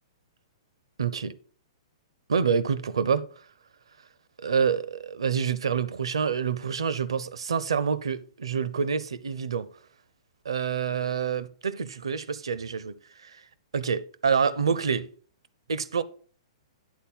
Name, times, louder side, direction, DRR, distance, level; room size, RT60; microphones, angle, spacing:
voice 1, 1.0-1.3 2.3-3.2 4.4-9.7 10.4-13.0 13.2-13.4 13.7-15.1 15.7-16.0, right 6 dB, 65° right, 0.6 m, -27 dB
9.3 x 4.2 x 5.4 m
figure-of-eight pair, 110°, 3 cm